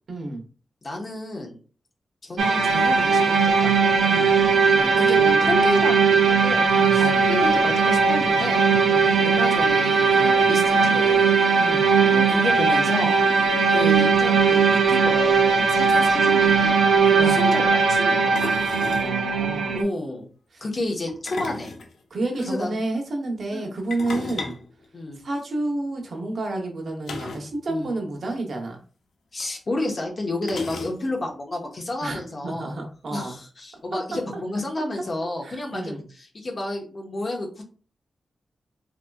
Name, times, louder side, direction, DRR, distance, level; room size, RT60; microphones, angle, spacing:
voice 1, 0.1-0.4 4.1-4.3 7.0-7.2 8.8-9.1 11.6-11.9 17.2-17.4 18.8-19.8 20.5-20.6 22.1-24.6 25.2-28.8 32.0-33.4 33.9-34.2 35.4-36.0, right 2 dB, 60° right, 2 dB, 0.9 m, -30 dB
voice 2, 0.8-1.6 2.2-3.7 4.7-8.7 9.2-11.2 12.1-13.2 13.7-18.7 19.7-20.3 20.6-21.7 22.4-22.8 23.5-23.7 24.1-24.3 24.9-25.2 27.7-27.9 29.3-32.7 33.1-37.6, left 2 dB, 40° left, 0 dB, 1.0 m, -30 dB
sound 1, 2.4-19.8, right 5 dB, 80° right, 0.4 m, -19 dB
sound 2, 16.0-16.1 16.3-16.5 18.3-19.1 21.1-22.5 23.9-25.6 27.0-27.6 27.8-27.9 28.2-28.4 29.4-29.5 30.4-31.3, left 3 dB, 90° left, 0.6 m, -35 dB
3.8 x 2.8 x 2.3 m, 0.39 s
wide cardioid pair, 105°, 0 cm